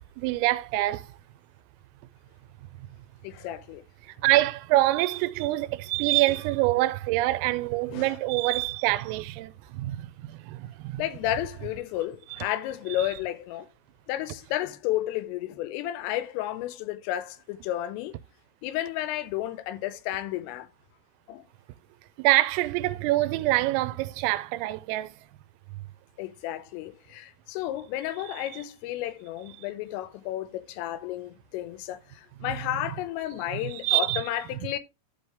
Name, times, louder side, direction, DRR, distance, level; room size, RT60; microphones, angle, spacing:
voice 1, 0.2-1.1 2.8-2.9 4.0-11.0 12.3-12.4 13.0-13.1 22.2-25.1 28.3-28.4 32.4-32.6 33.5-34.2, right 17 dB, 90° right, 3.3 m, -26 dB
voice 2, 3.2-3.8 6.3-6.4 7.9-8.2 11.0-13.7 14.1-18.2 18.6-20.7 21.3-21.4 26.2-34.8, left 13 dB, 90° left, 3.4 m, -32 dB
13.0 x 5.0 x 3.4 m
omnidirectional pair, 5.8 m